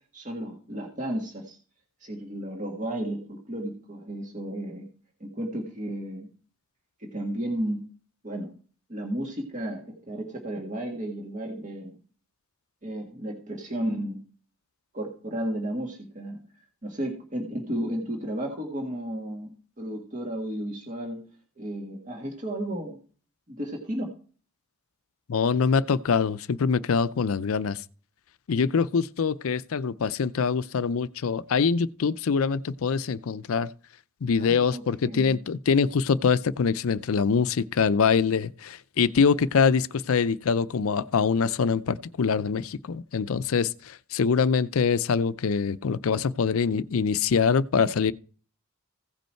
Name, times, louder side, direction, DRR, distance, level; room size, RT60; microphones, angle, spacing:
voice 1, 0.1-1.6 2.0-4.9 5.2-6.3 7.0-7.8 8.2-8.5 8.9-12.0 12.8-14.2 14.9-16.4 16.8-21.2 21.6-23.0 23.5-24.1 34.4-35.4, right 1 dB, 35° right, 1.7 m, -33 dB
voice 2, 25.3-27.8 28.5-33.7 34.2-48.1, left 5 dB, 75° left, 0.5 m, -24 dB
16.0 x 5.3 x 4.5 m
head